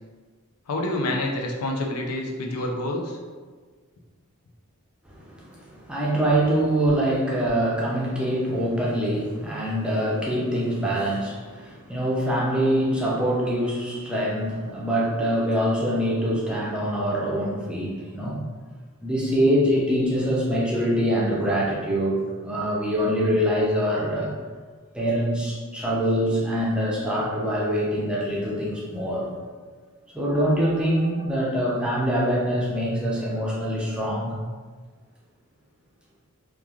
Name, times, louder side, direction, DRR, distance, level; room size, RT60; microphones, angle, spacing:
voice 1, 0.7-3.2 19.2-19.4, left 1 dB, 85° left, 0 dB, 0.5 m, -28 dB
voice 2, 5.1-18.4 19.0-24.3 24.9-29.3 30.1-34.4, equal, 5° right, -5 dB, 0.4 m, -24 dB
3.1 x 2.3 x 2.3 m, 1.5 s
head